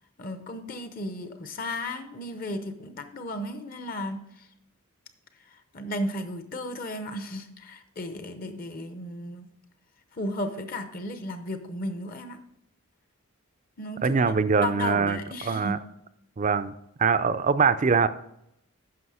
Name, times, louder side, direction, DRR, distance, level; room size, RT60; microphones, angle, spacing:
voice 1, 0.2-4.5 5.5-9.5 10.1-12.4 13.8-15.8, left 1 dB, 40° left, 8 dB, 0.7 m, -35 dB
voice 2, 14.0-15.2 15.4-15.8 16.4-18.1, right 5 dB, 35° right, 13 dB, 0.4 m, -23 dB
9.5 x 6.3 x 4.9 m, 0.81 s
head